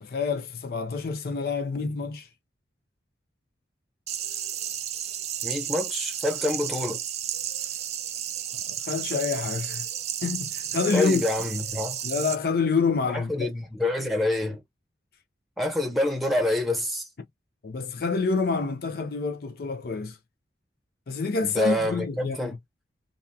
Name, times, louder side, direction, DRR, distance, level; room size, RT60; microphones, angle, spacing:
voice 1, 0.0-2.3 8.7-9.9 10.2-11.3 12.0-13.5 17.6-20.2 21.1-22.6, left 4 dB, 55° left, 0.4 m, -27 dB
sound 1, 4.1-12.4, right 10 dB, 35° right, 0.3 m, -32 dB
voice 2, 5.4-7.0 10.9-12.0 13.1-14.6 15.6-17.1 21.4-22.6, left 1 dB, ahead, 0.8 m, -27 dB
2.8 x 2.3 x 2.2 m
head